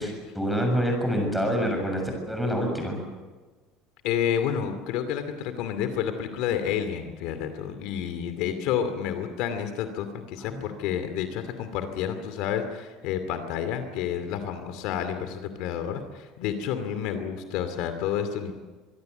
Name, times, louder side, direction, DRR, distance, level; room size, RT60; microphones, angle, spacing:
voice 1, 0.0-2.0 2.3-3.0 10.5-10.6, equal, ahead, 1 dB, 6.8 m, -26 dB
voice 2, 4.0-18.5, left 9 dB, 60° left, 9 dB, 2.5 m, -30 dB
25.0 x 22.5 x 8.0 m, 1.3 s
cardioid pair, 170°, 0 cm